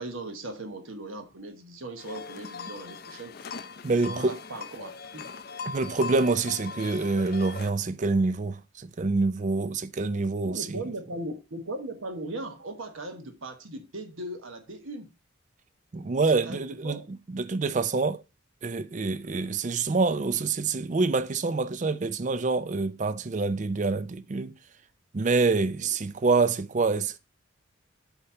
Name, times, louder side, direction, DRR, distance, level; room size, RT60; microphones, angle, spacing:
voice 1, 0.0-3.4 3.9-5.3 10.4-15.1 16.3-17.1 25.8-25.9, right 1 dB, 75° right, 1.2 m, -38 dB
sound 1, 2.0-7.7, left 5 dB, 45° left, 0.5 m, -40 dB
voice 2, 3.8-4.4 5.7-10.8 15.9-17.0 17.3-18.2 18.6-24.5 25.1-27.2, right 3 dB, 35° right, 0.4 m, -26 dB
8.0 x 2.9 x 5.6 m
head